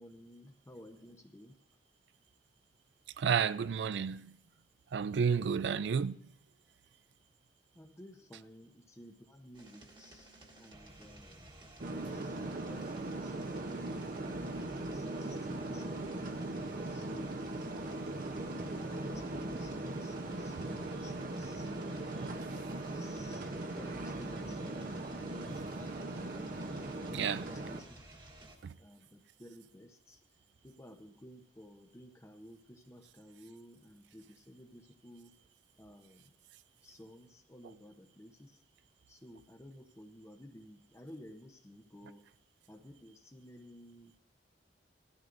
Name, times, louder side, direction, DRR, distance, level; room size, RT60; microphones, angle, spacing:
voice 1, 0.0-1.6 5.5-5.8 7.7-11.5 11.9-12.3 12.7-14.1 14.8-16.3 16.9-17.5 18.4-21.7 22.2-23.5 23.8-26.0 26.5-28.1 28.6-30.2 30.6-35.3 35.8-36.3 36.8-38.6 39.1-42.3 42.7-44.2, left 1 dB, 15° left, 0.7 m, -54 dB
voice 2, 3.2-4.3 4.9-6.1 27.1-27.4 28.6-28.7, right 6 dB, 70° right, 0.4 m, -31 dB
sound 1, 9.5-28.6, right 1 dB, 25° right, 1.3 m, -54 dB
sound 2, 11.8-27.8, right 2 dB, 50° right, 0.8 m, -39 dB
16.5 x 12.5 x 2.6 m
head